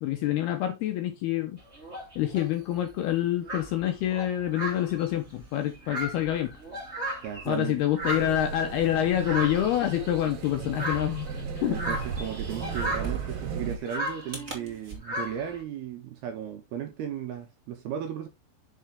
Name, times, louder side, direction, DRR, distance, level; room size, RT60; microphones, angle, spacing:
voice 1, 0.0-1.6 2.2-6.5 7.5-11.3 11.6-11.8, left 12 dB, 75° left, 2.4 m, -27 dB
sound 1, 1.6-2.5 3.1-3.2 3.4-7.6 7.9-14.6 15.0-15.6, right 1 dB, 20° right, 1.7 m, -36 dB
sound 2, 4.5-15.0, right 4 dB, 35° right, 1.0 m, -46 dB
voice 2, 7.2-7.8 11.6-18.3, right 9 dB, 75° right, 2.4 m, -35 dB
sound 3, 8.0-13.8, right 6 dB, 60° right, 3.0 m, -36 dB
6.7 x 6.1 x 3.6 m
omnidirectional pair, 5.5 m